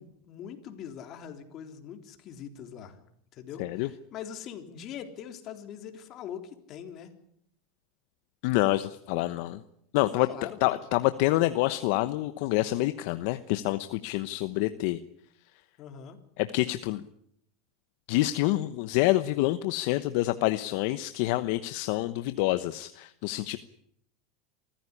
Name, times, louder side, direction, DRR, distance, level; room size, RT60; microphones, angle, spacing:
voice 1, 0.0-3.0 3.3-7.1 10.2-10.8 15.8-16.2, left 8 dB, 45° left, 6 dB, 3.6 m, -42 dB
voice 2, 3.6-3.9 8.4-9.6 9.9-10.3 10.6-15.0 16.4-17.0 18.1-23.6, left 17 dB, 65° left, 11 dB, 1.0 m, -27 dB
26.0 x 15.0 x 9.8 m, 0.72 s
supercardioid pair, 130°, 0 cm